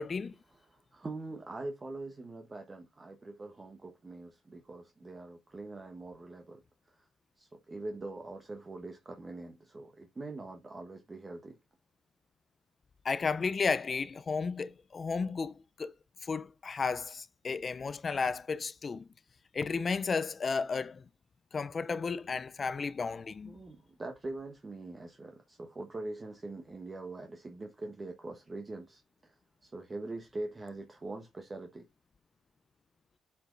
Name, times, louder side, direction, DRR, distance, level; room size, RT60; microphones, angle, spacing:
voice 1, 0.0-0.3 13.0-15.9 16.2-19.1 19.5-21.0 21.5-23.6, left 5 dB, 40° left, 0.5 m, -33 dB
voice 2, 0.5-6.6 6.9-7.1 7.4-11.6 23.5-29.4 29.6-31.9, right 2 dB, 25° right, 1.2 m, -43 dB
10.0 x 5.1 x 2.5 m
cardioid pair, 90°, 0 cm